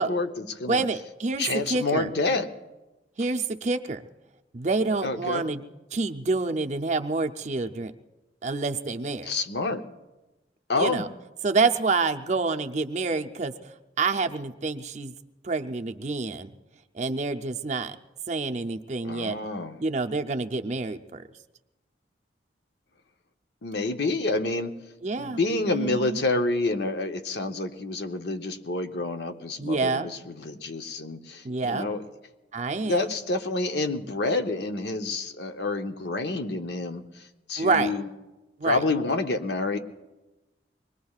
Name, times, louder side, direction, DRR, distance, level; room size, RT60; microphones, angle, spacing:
voice 1, 0.0-0.8 1.4-2.5 5.0-5.4 9.2-9.8 10.7-11.0 19.0-19.8 23.6-24.8 25.2-32.0 32.7-38.1 38.6-39.8, left 3 dB, 65° left, 7 dB, 0.9 m, -28 dB
voice 2, 0.7-2.1 3.2-4.0 4.5-5.6 5.9-7.9 8.4-9.3 10.8-11.1 11.4-15.1 15.4-16.5 16.9-18.0 18.3-19.4 19.8-21.2 25.0-25.4 25.7-26.2 29.6-30.1 31.4-31.9 32.5-33.1 37.6-37.9 38.6-38.8, right 3 dB, 40° right, 6 dB, 0.5 m, -27 dB
24.5 x 20.5 x 2.4 m, 1.1 s
head